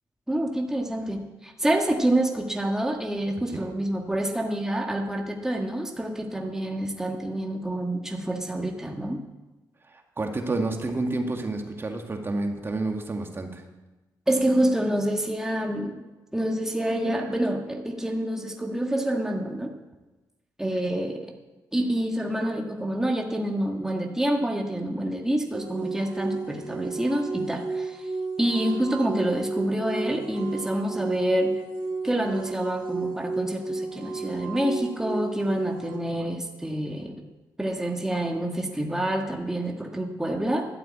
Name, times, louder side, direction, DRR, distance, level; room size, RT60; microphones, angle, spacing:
voice 1, 0.3-9.2 14.3-16.0 16.3-19.7 20.6-21.3 21.7-28.0 28.4-31.5 32.0-37.1 37.6-40.7, right 1 dB, 5° right, 1 dB, 1.6 m, -27 dB
voice 2, 9.9-13.6, right 2 dB, 30° right, 3 dB, 1.8 m, -29 dB
sound 1, 25.5-36.0, right 4 dB, 85° right, 2.2 m, -33 dB
12.0 x 9.0 x 8.6 m, 1.1 s
cardioid pair, 95°, 7 cm